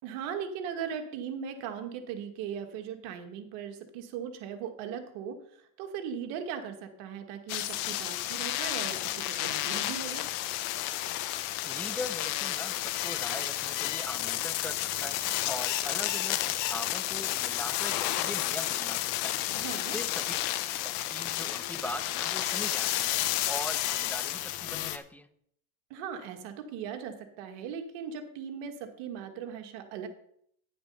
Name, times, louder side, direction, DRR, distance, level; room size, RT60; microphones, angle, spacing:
voice 1, 0.0-5.4 5.8-10.2 19.6-20.0 25.9-30.1, right 7 dB, 75° right, 6 dB, 2.0 m, -38 dB
sound 1, 7.5-25.0, left 14 dB, 80° left, 1.1 m, -31 dB
voice 2, 11.6-15.2 15.5-19.3 19.7-20.4 20.8-23.1 23.5-25.3, left 1 dB, 5° left, 9 dB, 0.9 m, -41 dB
10.5 x 7.7 x 5.5 m, 0.68 s
supercardioid pair, 105°, 46 cm